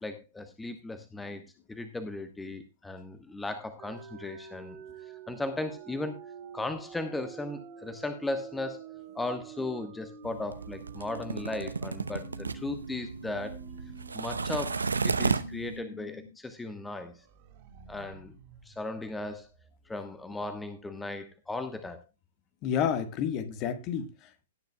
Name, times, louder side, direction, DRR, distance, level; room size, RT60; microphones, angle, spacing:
voice 1, 0.0-1.4 1.7-4.8 5.3-6.2 6.5-13.6 14.1-17.2 17.9-18.4 18.6-19.5 19.9-22.0, left 2 dB, 5° left, 1.3 m, -36 dB
sound 1, 3.8-16.3 16.6-16.7 17.1-19.8, right 5 dB, 40° right, 2.9 m, -47 dB
sound 2, 10.2-15.8, right 4 dB, 75° right, 0.9 m, -33 dB
voice 2, 22.6-24.5, left 8 dB, 30° left, 1.6 m, -30 dB
18.0 x 9.5 x 2.3 m
figure-of-eight pair, 110°, 0 cm